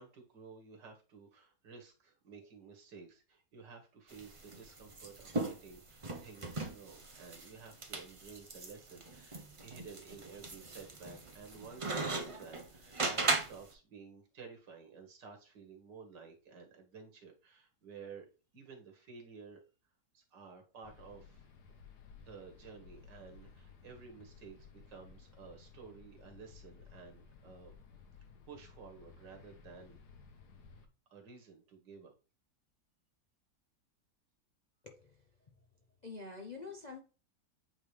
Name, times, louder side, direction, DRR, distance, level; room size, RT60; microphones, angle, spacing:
voice 1, 0.0-18.3 18.5-19.6 20.1-21.5 22.2-27.7 28.5-30.0 31.1-32.1, right 5 dB, 80° right, 2.1 m, -53 dB
sound 1, 4.1-13.7, right 3 dB, 35° right, 0.5 m, -38 dB
sound 2, 20.8-30.9, left 5 dB, 70° left, 1.5 m, -57 dB
voice 2, 34.8-35.1 36.0-37.0, left 4 dB, 45° left, 0.6 m, -46 dB
8.5 x 3.7 x 3.3 m
omnidirectional pair, 1.9 m